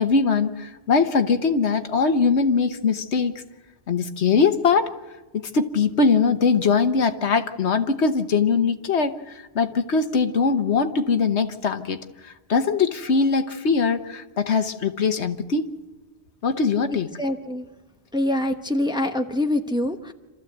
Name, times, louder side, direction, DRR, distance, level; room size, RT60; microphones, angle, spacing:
voice 1, 0.0-3.3 3.9-4.9 5.3-12.0 12.2-15.6 16.4-17.1, left 5 dB, 80° left, 8 dB, 1.4 m, -21 dB
voice 2, 17.2-17.7 18.1-20.1, left 1 dB, 5° right, 6 dB, 0.9 m, -24 dB
27.5 x 14.0 x 8.0 m, 1.2 s
omnidirectional pair, 1.1 m